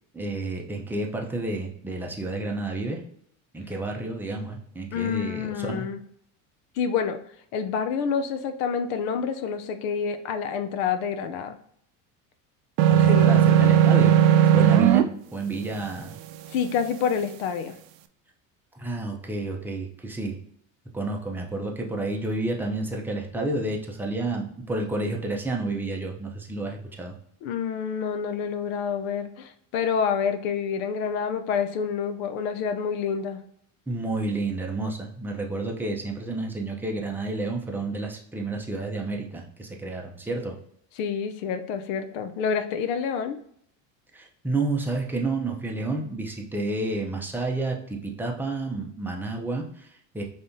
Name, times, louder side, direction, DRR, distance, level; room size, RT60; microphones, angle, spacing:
voice 1, 0.1-3.0 3.5-5.9 12.9-14.1 14.5-15.0 15.3-16.2 18.7-20.4 20.9-27.2 33.9-40.5 44.1-50.2, right 2 dB, 5° right, 0 dB, 0.6 m, -30 dB
voice 2, 4.9-6.0 6.8-7.2 7.5-11.5 13.0-13.3 16.5-17.8 27.4-33.4 41.0-43.4, left 6 dB, 80° left, 8 dB, 0.7 m, -28 dB
sound 1, 12.8-15.0, right 10 dB, 75° right, 0.6 m, -16 dB
5.3 x 3.5 x 2.6 m, 0.67 s
cardioid pair, 145°, 41 cm